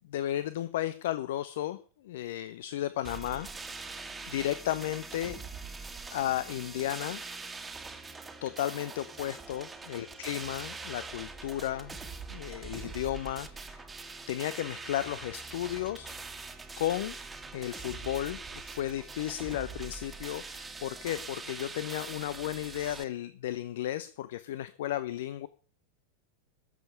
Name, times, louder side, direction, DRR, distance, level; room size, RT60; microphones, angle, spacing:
voice 1, 0.1-1.8 2.0-3.5 4.3-5.4 6.1-7.2 8.4-12.0 12.3-13.9 14.3-16.1 16.8-17.2 17.5-25.5, left 13 dB, 55° left, 15 dB, 0.7 m, -34 dB
sound 1, 3.0-23.0, right 4 dB, 10° right, 1.7 m, -43 dB
13.5 x 7.5 x 8.2 m, 0.41 s
figure-of-eight pair, 90°, 0 cm